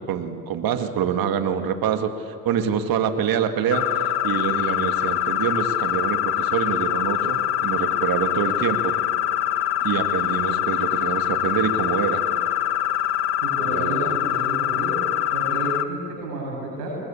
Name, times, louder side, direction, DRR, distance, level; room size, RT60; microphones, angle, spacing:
voice 1, 0.0-3.9 4.2-8.9 9.8-12.2 13.7-14.2, right 8 dB, 45° right, 7 dB, 2.0 m, -25 dB
sound 1, 3.7-15.8, left 11 dB, 75° left, 1.5 m, -24 dB
voice 2, 13.4-14.9 15.3-17.0, right 2 dB, 85° right, -3 dB, 8.0 m, -31 dB
22.0 x 21.0 x 8.5 m, 2.5 s
hypercardioid pair, 85°, 47 cm